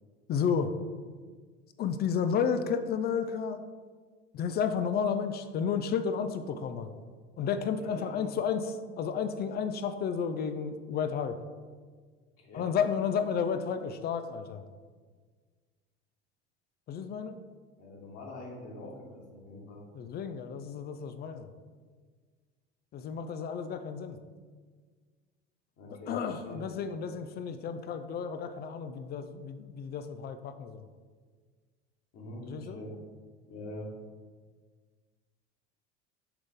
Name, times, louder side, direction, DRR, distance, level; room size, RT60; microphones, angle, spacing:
voice 1, 0.3-0.7 1.8-3.6 4.3-6.9 7.4-8.7 9.0-11.3 12.5-14.6 16.9-17.4 19.9-21.5 22.9-24.2 26.1-30.8 32.5-32.8, left 7 dB, 30° left, 9 dB, 0.4 m, -32 dB
voice 2, 7.8-8.3 12.4-12.7 17.8-19.8 25.8-26.6 32.1-32.9 33.5-33.9, left 1 dB, 45° left, -2 dB, 1.8 m, -44 dB
7.1 x 3.9 x 3.7 m, 1.5 s
figure-of-eight pair, 70°, 35 cm